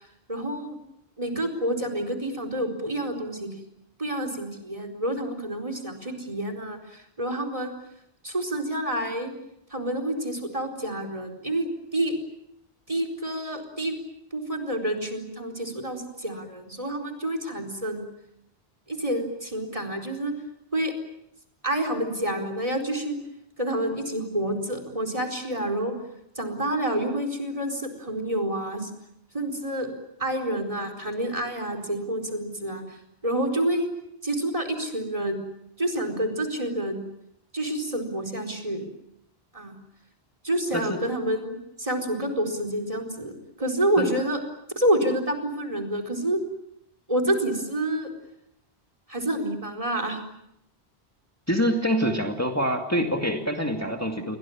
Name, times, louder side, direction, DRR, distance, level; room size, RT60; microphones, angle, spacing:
voice 1, 0.3-0.8 1.2-3.5 4.0-7.7 8.2-9.3 9.7-12.1 12.9-14.0 14.3-18.0 18.9-20.3 20.7-20.9 21.6-23.2 23.6-25.9 26.4-28.9 29.3-29.9 30.2-32.8 33.2-33.9 34.2-35.4 35.8-37.0 37.5-38.9 39.5-39.7 40.4-44.4 44.8-46.4 47.1-48.1 49.1-50.2, right 1 dB, 30° right, 7 dB, 4.4 m, -28 dB
voice 2, 51.5-54.4, equal, 15° left, 3 dB, 2.2 m, -25 dB
30.0 x 23.0 x 7.3 m, 0.80 s
omnidirectional pair, 1.1 m